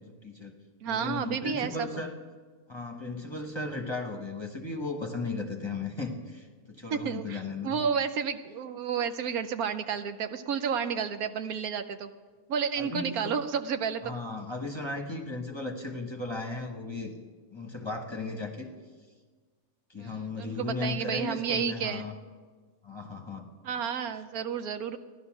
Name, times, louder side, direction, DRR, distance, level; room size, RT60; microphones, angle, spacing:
voice 1, 0.2-0.5 0.8-2.1 2.7-7.8 12.8-13.3 14.0-17.1 17.5-18.7 19.9-22.1 22.8-23.5, left 3 dB, 20° left, 3 dB, 1.1 m, -36 dB
voice 2, 0.8-1.9 6.9-12.1 12.5-14.1 20.0-22.1 23.6-25.0, right 7 dB, 75° right, 9 dB, 1.2 m, -31 dB
15.5 x 11.5 x 6.1 m, 1.4 s
omnidirectional pair, 1.6 m